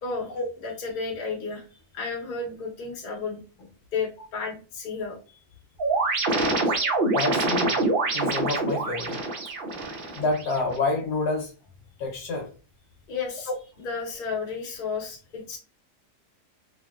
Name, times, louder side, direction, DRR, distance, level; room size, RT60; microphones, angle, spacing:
voice 1, 0.0-0.3 0.6-5.4 9.7-9.9 13.1-13.5 13.8-15.6, left 4 dB, 40° left, 0.9 m, -33 dB
sound 1, 5.8-10.8, right 2 dB, 60° right, 0.5 m, -25 dB
voice 2, 7.1-7.8 8.1-9.2 10.1-11.5 12.0-12.5 13.5-13.6, left 3 dB, 75° left, 1.3 m, -28 dB
3.0 x 2.8 x 2.3 m
omnidirectional pair, 1.8 m